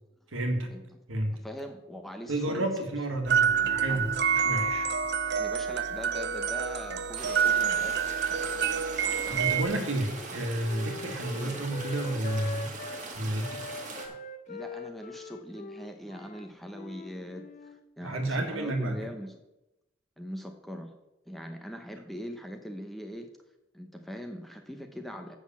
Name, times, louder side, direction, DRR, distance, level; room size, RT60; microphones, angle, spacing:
voice 1, 0.3-0.7 1.1-1.4 2.3-4.9 9.3-12.7 13.1-13.6 18.0-19.1, right 1 dB, 70° right, 4 dB, 1.7 m, -31 dB
voice 2, 1.4-2.9 3.6-4.1 5.4-8.4 11.3-11.7 14.5-19.4 20.2-20.9 21.3-23.3 23.7-25.3, equal, ahead, 4 dB, 0.7 m, -42 dB
sound 1, 3.3-9.6, right 7 dB, 55° right, 0.6 m, -27 dB
sound 2, 7.2-14.1, right 3 dB, 35° right, 1.6 m, -41 dB
Wind instrument woodwind instrument, 9.1-13.0 13.4-17.8, left 3 dB, 35° left, 0.5 m, -43 dB
7.8 x 6.2 x 7.3 m, 0.94 s
head